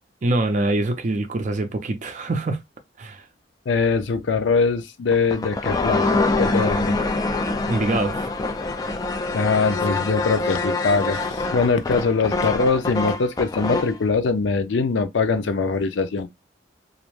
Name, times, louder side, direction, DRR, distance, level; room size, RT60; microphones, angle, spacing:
voice 1, 0.2-2.6 3.0-3.2 7.7-8.2, right 2 dB, 45° right, 0.4 m, -24 dB
voice 2, 3.7-7.0 9.3-16.3, left 4 dB, 80° left, 0.5 m, -22 dB
sound 1, 5.1-14.0, left 2 dB, 20° left, 0.3 m, -25 dB
2.5 x 2.1 x 3.0 m
head